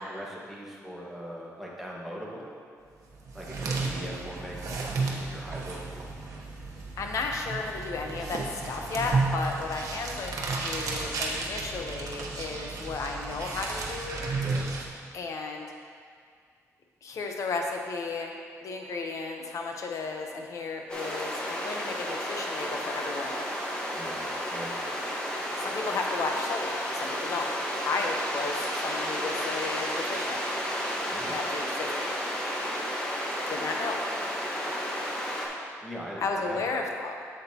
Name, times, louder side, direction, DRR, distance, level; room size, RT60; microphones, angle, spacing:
voice 1, 0.0-2.5 3.3-5.9 14.3-14.7 23.9-24.7 31.1-31.4 35.8-36.7, equal, ahead, -4 dB, 1.5 m, -41 dB
sound 1, 3.1-14.9, right 3 dB, 70° right, 1.0 m, -33 dB
voice 2, 7.0-14.3 15.1-15.7 17.0-18.3 18.6-23.5 25.6-27.5 27.9-30.4 31.3-32.1 33.5-34.0 36.2-37.2, left 3 dB, 65° left, 2 dB, 0.9 m, -33 dB
sound 2, 20.9-35.5, equal, 15° left, 1.3 m, -32 dB
8.3 x 7.5 x 2.9 m, 2.1 s
cardioid pair, 105°, 6 cm